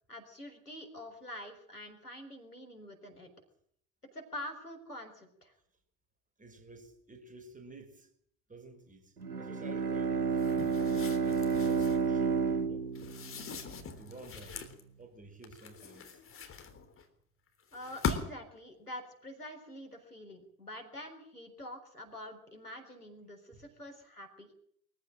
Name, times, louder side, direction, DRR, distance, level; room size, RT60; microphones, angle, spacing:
voice 1, 0.1-3.3 4.1-5.5 17.7-24.5, left 1 dB, 90° left, 4.2 m, -46 dB
voice 2, 6.4-8.1 8.5-10.8 11.2-12.9 14.0-14.6 15.0-16.2 23.5-23.7, right 3 dB, 15° right, 5.4 m, -52 dB
Bowed string instrument, 9.2-14.0, right 5 dB, 85° right, 1.0 m, -31 dB
sound 1, 10.4-12.1 12.9-14.8 15.4-17.0 17.7-18.5, left 5 dB, 30° left, 3.6 m, -40 dB
23.5 x 15.0 x 8.9 m
figure-of-eight pair, 70°, 44 cm